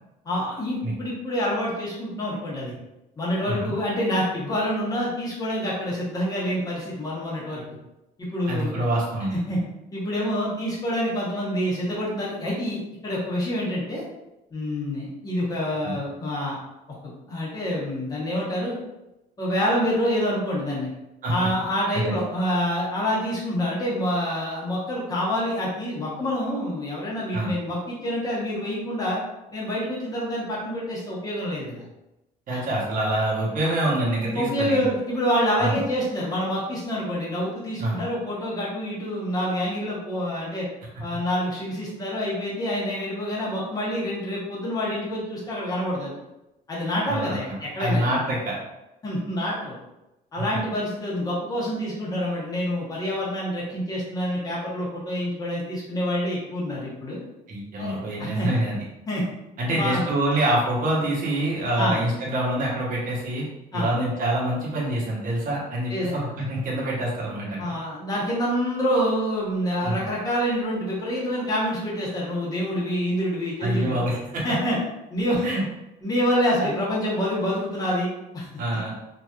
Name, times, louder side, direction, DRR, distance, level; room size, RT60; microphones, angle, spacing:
voice 1, 0.2-2.7 3.2-7.6 8.2-8.8 9.3-9.6 9.9-14.0 14.5-16.6 17.0-18.8 19.4-20.9 21.3-29.2 29.5-31.8 32.5-32.6 33.6-33.7 34.3-40.7 41.0-46.1 46.7-48.0 49.0-49.8 50.3-57.2 57.8-58.5 59.1-59.2 59.7-60.0 61.8-62.0 63.7-63.9 65.9-66.1 67.6-74.0 74.4-74.8 75.1-75.5 76.0-78.5, equal, 20° left, -6 dB, 1.1 m, -27 dB
voice 2, 8.5-9.3 15.8-16.0 21.2-21.5 21.9-22.1 27.3-27.5 32.5-34.8 35.6-35.8 37.8-38.0 47.1-48.6 57.5-58.8 59.6-63.4 63.7-67.8 69.8-70.0 73.6-74.4 75.4-75.6 76.6-76.7 78.6-78.9, right 1 dB, 55° right, -4 dB, 1.1 m, -26 dB
3.2 x 2.6 x 2.4 m, 0.95 s
cardioid pair, 130°, 16 cm